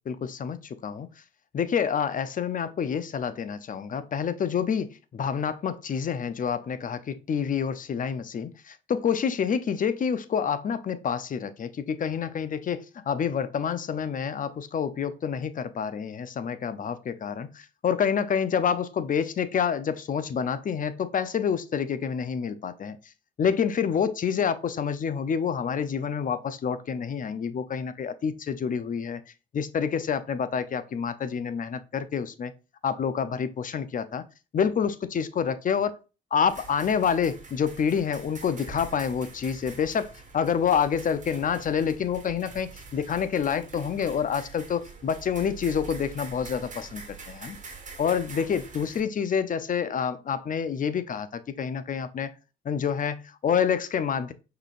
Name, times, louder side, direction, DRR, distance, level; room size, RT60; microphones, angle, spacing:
voice 1, 0.1-1.1 1.5-23.0 23.4-29.2 29.5-32.5 32.8-34.2 34.5-36.0 36.3-47.6 48.0-52.3 52.6-54.3, left 7 dB, 40° left, 0.6 m, -28 dB
sound 1, 36.5-49.0, right 4 dB, 40° right, 1.4 m, -45 dB
5.5 x 3.8 x 2.4 m
cardioid pair, 90°, 20 cm